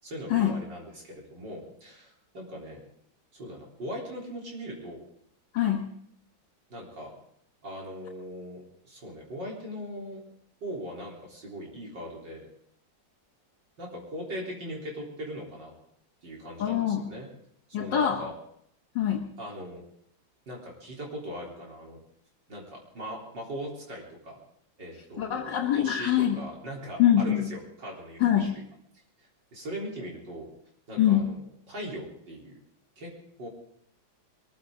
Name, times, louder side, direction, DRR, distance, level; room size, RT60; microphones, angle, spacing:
voice 1, 0.0-2.8 3.3-5.0 6.7-7.1 7.6-10.2 10.6-12.5 13.8-15.7 16.2-17.3 17.7-18.3 19.4-19.8 20.5-22.0 22.5-24.4 24.8-25.5 25.8-28.6 29.2-30.5 30.9-32.6 33.0-33.1 33.4-33.5, equal, 60° right, -3 dB, 4.4 m, -40 dB
voice 2, 5.5-5.9 16.6-17.1 17.7-18.2 19.0-19.3 25.2-26.4 27.0-27.5 28.2-28.6 31.0-31.3, left 10 dB, 65° left, 1 dB, 1.9 m, -24 dB
22.0 x 15.0 x 3.8 m, 0.69 s
omnidirectional pair, 2.2 m